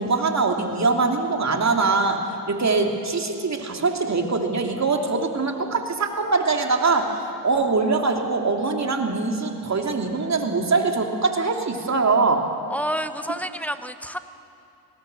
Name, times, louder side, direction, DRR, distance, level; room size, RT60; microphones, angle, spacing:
voice 1, 0.0-12.4, right 3 dB, 35° right, 3 dB, 2.9 m, -23 dB
voice 2, 12.7-14.2, equal, 5° left, 9 dB, 1.1 m, -29 dB
20.5 x 17.5 x 7.9 m, 2.6 s
hypercardioid pair, 55°, 47 cm